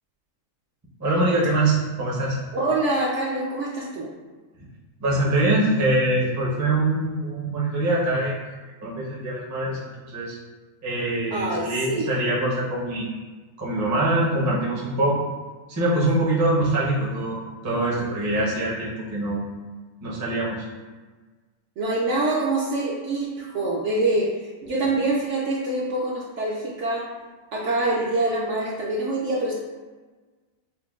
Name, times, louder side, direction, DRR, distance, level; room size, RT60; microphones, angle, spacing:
voice 1, 1.0-2.4 5.0-8.4 8.8-10.4 10.8-13.1 13.6-15.3 15.7-19.4 20.0-20.6, right 1 dB, 20° right, -6 dB, 0.4 m, -24 dB
voice 2, 2.5-4.1 11.3-12.1 21.8-27.1 27.5-29.5, right 2 dB, 65° right, -4 dB, 0.7 m, -25 dB
5.5 x 2.2 x 2.3 m, 1.3 s
omnidirectional pair, 1.6 m